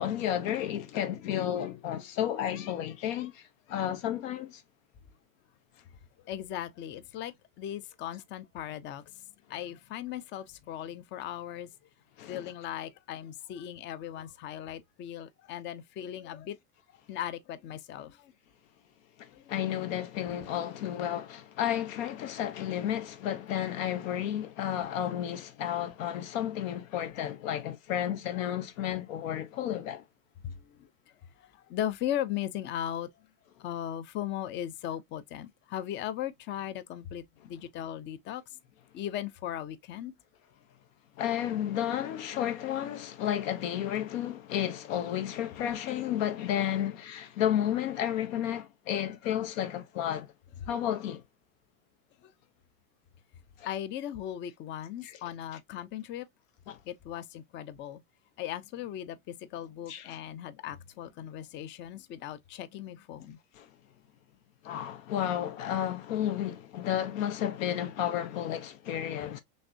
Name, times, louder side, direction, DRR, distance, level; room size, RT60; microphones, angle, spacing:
voice 1, 0.0-4.6 12.2-12.4 19.2-30.0 41.2-50.3 50.7-51.2 53.6-53.7 55.0-55.2 56.7-56.8 59.9-60.2 63.6-63.7 64.6-69.4, left 10 dB, 70° left, 0.8 m, -32 dB
voice 2, 6.2-9.2 9.5-11.7 12.2-16.6 17.1-18.3 19.3-19.5 30.4-30.9 31.4-33.3 33.6-38.4 38.9-40.1 50.6-50.7 52.2-52.3 53.6-56.3 56.9-58.0 58.4-63.4, left 11 dB, 30° left, 0.5 m, -38 dB
6.3 x 2.6 x 2.6 m
supercardioid pair, 140°, 41 cm